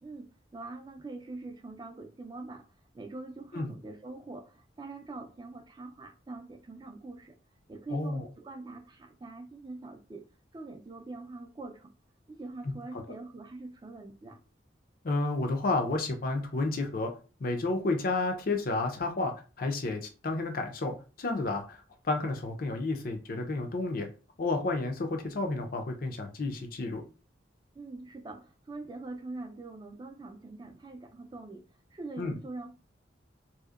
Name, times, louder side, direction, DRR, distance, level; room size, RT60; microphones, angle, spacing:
voice 1, 0.0-2.7 2.9-7.4 7.7-10.2 10.5-11.9 12.3-14.4 27.7-31.6 31.9-32.7, right 3 dB, 25° right, 0.3 m, -43 dB
voice 2, 7.9-8.3 15.0-17.1 17.4-24.1 24.4-27.0 32.2-32.4, left 2 dB, 50° left, 0.5 m, -31 dB
2.7 x 2.1 x 2.3 m
head